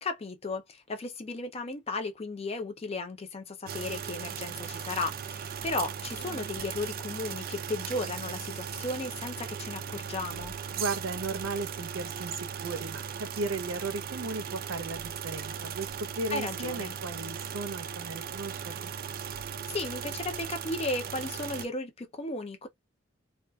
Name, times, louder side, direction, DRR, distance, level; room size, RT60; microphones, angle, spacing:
voice 1, 0.0-10.6 16.3-16.9 19.7-22.7, left 2 dB, 30° left, 0.5 m, -35 dB
sound 1, 3.7-21.7, right 8 dB, 50° right, 0.3 m, -38 dB
voice 2, 10.7-18.9, right 3 dB, 80° right, 0.7 m, -36 dB
2.5 x 2.4 x 2.2 m
head